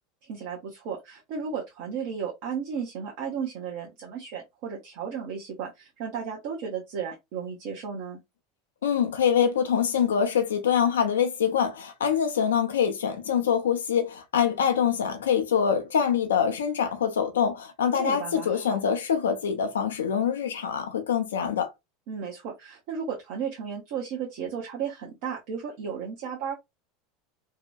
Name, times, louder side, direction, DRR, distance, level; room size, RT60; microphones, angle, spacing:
voice 1, 0.2-8.2 17.9-18.8 22.1-26.5, right 7 dB, 60° right, 0.6 m, -34 dB
voice 2, 8.8-21.7, left 7 dB, 80° left, 0.4 m, -25 dB
2.7 x 2.1 x 2.3 m
hypercardioid pair, 85°, 0 cm